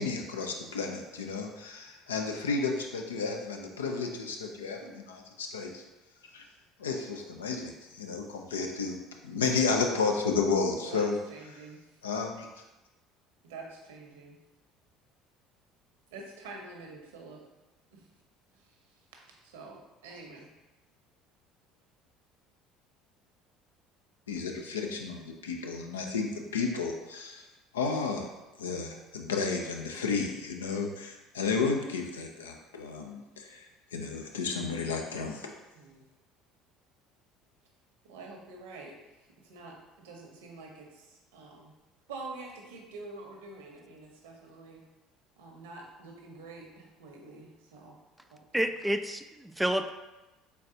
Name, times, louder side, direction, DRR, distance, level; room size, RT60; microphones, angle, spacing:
voice 1, 0.0-5.8 6.3-6.5 6.8-9.0 9.2-11.2 12.0-12.5 24.3-27.5 27.7-28.3 28.6-35.5, left 4 dB, 90° left, 3 dB, 0.4 m, -32 dB
voice 2, 11.3-11.8 13.4-14.4 16.1-17.4 17.9-18.0 19.4-20.5 35.7-36.0 38.0-38.9 39.4-41.7 42.1-44.8 45.4-47.9 48.3-48.4, right 3 dB, 80° right, 0 dB, 0.8 m, -46 dB
voice 3, 48.5-49.9, right 1 dB, 5° right, 8 dB, 0.3 m, -29 dB
3.9 x 3.5 x 2.7 m, 1.0 s
hypercardioid pair, 70°, 0 cm